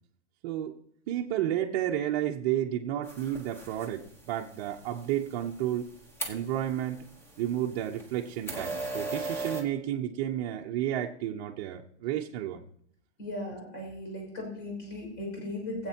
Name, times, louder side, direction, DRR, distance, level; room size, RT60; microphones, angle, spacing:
voice 1, 0.4-0.8 1.1-5.9 6.3-7.0 7.4-12.6, right 11 dB, 35° right, -1 dB, 0.8 m, -31 dB
sound 1, 3.0-9.6, right 2 dB, 5° left, 1.0 m, -40 dB
voice 2, 13.2-15.9, left 1 dB, 40° left, 0 dB, 5.6 m, -37 dB
21.5 x 8.1 x 2.9 m, 0.66 s
supercardioid pair, 165°, 35 cm